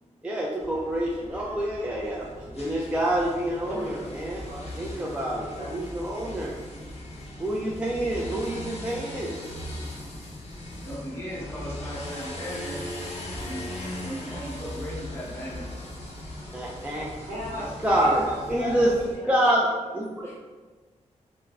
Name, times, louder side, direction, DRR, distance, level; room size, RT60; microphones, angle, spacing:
voice 1, 0.2-6.5 7.4-9.3 16.5-17.3 17.8-18.9 19.3-20.4, right 1 dB, 10° right, -4 dB, 0.3 m, -27 dB
sound 1, 0.6-19.1, left 1 dB, 55° left, 0.6 m, -39 dB
voice 2, 4.3-4.7 5.5-5.7 8.3-8.5 17.0-19.3, equal, 75° right, -6 dB, 1.0 m, -37 dB
voice 3, 10.8-12.9 13.4-13.6 14.0-15.9 18.0-18.1 18.7-18.9 19.2-19.4 20.2-20.3, equal, 20° left, -6 dB, 0.8 m, -37 dB
3.2 x 2.0 x 2.3 m, 1.3 s
wide cardioid pair, 100°, 13 cm